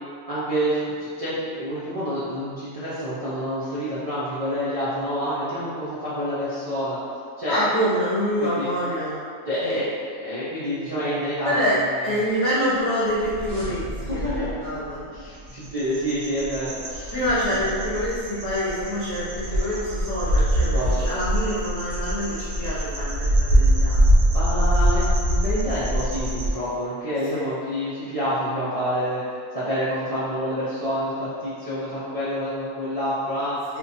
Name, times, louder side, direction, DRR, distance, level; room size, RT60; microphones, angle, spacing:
voice 1, 0.3-7.0 7.4-7.6 8.4-8.7 9.5-11.5 14.0-14.6 15.1-17.1 20.7-21.1 24.3-29.2 29.5-33.6, equal, 65° right, -12 dB, 0.3 m, -28 dB
voice 2, 7.5-9.2 9.6-9.8 11.4-11.8 12.0-15.0 17.1-24.0 27.3-27.4 33.7-33.8, equal, 60° left, -10 dB, 0.8 m, -26 dB
sound 1, 12.6-16.2, equal, ahead, 0.7 m, -37 dB
sound 2, 15.5-26.5, equal, 90° right, 1.0 m, -23 dB
2.8 x 2.2 x 2.7 m, 2.2 s
omnidirectional pair, 1.4 m